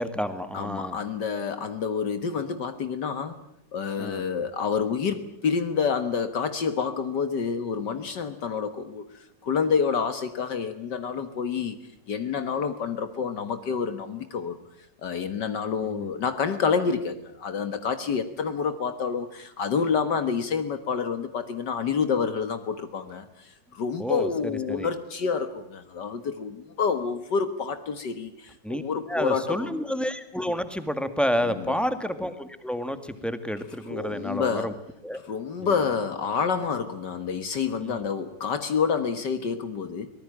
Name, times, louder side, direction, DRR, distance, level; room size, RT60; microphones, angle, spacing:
voice 1, 0.0-1.0 4.0-4.2 15.8-16.1 24.0-24.9 28.6-28.8 29.1-34.7 35.0-35.2 35.6-35.7 37.8-38.0, equal, ahead, 10 dB, 1.7 m, -30 dB
voice 2, 0.5-3.4 3.7-11.8 12.1-14.6 15.0-29.7 31.4-31.8 33.9-34.7 35.3-40.1, left 6 dB, 65° left, 10 dB, 2.0 m, -28 dB
24.5 x 19.5 x 8.9 m, 0.75 s
omnidirectional pair, 2.0 m